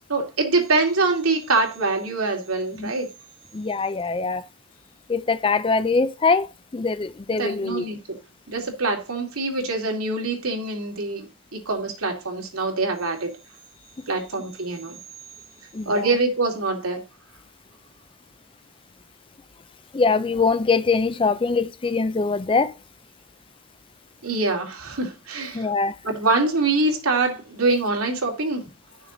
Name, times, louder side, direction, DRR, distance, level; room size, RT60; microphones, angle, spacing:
voice 1, 0.1-3.1 7.4-8.0 8.5-11.2 11.7-13.3 14.1-15.0 15.9-17.0 24.2-25.7 26.0-28.6, right 3 dB, 80° right, 2.5 m, -24 dB
voice 2, 3.5-4.4 5.1-6.5 6.7-7.8 15.7-16.1 19.9-22.7 25.5-26.0, left 4 dB, 25° left, 0.4 m, -22 dB
11.5 x 6.3 x 3.9 m
head